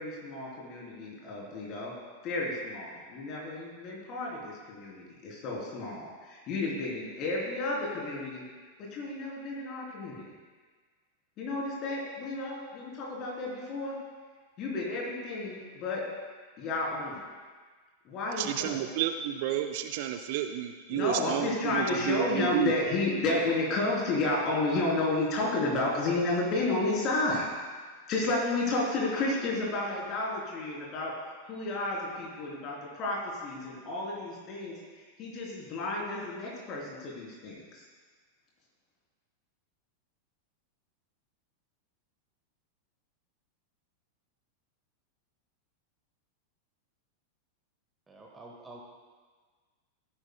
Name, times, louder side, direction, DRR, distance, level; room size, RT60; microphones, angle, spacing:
voice 1, 0.0-1.9 2.2-8.4 8.8-10.2 11.4-13.9 14.6-16.0 16.6-17.2 18.0-18.8 20.9-27.5 28.1-31.1 31.4-37.8, left 2 dB, 35° left, -3 dB, 3.3 m, -32 dB
voice 2, 18.4-22.7, right 11 dB, 50° right, 7 dB, 0.5 m, -31 dB
voice 3, 48.1-48.8, right 2 dB, 15° right, -1 dB, 1.2 m, -48 dB
15.0 x 9.7 x 2.2 m, 1.5 s
figure-of-eight pair, 90°, 0 cm